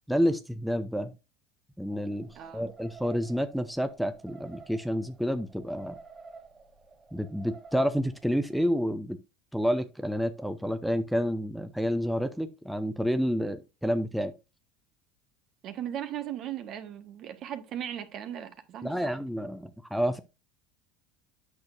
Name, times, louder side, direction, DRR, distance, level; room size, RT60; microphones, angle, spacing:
voice 1, 0.1-1.1 1.8-6.0 7.1-9.2 9.5-14.3 18.8-20.2, equal, ahead, 0.7 m, -29 dB
sound 1, 1.9-8.8, right 4 dB, 20° right, 1.5 m, -52 dB
voice 2, 2.3-2.7 15.6-19.1, right 10 dB, 50° right, 1.4 m, -37 dB
8.6 x 6.2 x 2.6 m
hypercardioid pair, 95°, 0 cm